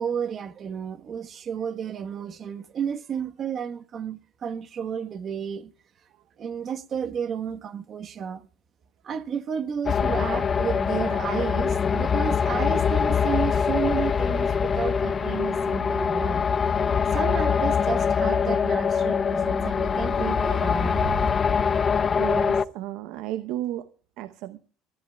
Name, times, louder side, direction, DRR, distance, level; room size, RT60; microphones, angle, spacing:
voice 1, 0.0-5.7 6.4-8.5 9.0-16.4 17.1-21.3, right 7 dB, 40° right, 1.2 m, -32 dB
sound 1, 9.9-22.6, left 6 dB, 30° left, 0.6 m, -23 dB
voice 2, 22.2-23.9 24.2-24.6, right 13 dB, 75° right, 0.8 m, -33 dB
24.0 x 14.0 x 2.3 m
cardioid pair, 115°, 0 cm